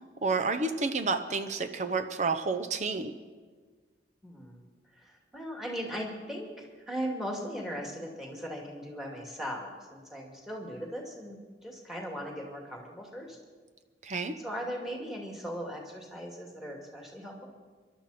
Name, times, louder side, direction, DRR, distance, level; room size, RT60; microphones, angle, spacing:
voice 1, 0.2-3.1 14.0-14.3, right 4 dB, 40° right, 8 dB, 0.8 m, -30 dB
voice 2, 4.2-4.6 4.9-13.4 14.4-17.5, equal, ahead, -1 dB, 2.5 m, -38 dB
24.0 x 12.0 x 4.3 m, 1.5 s
head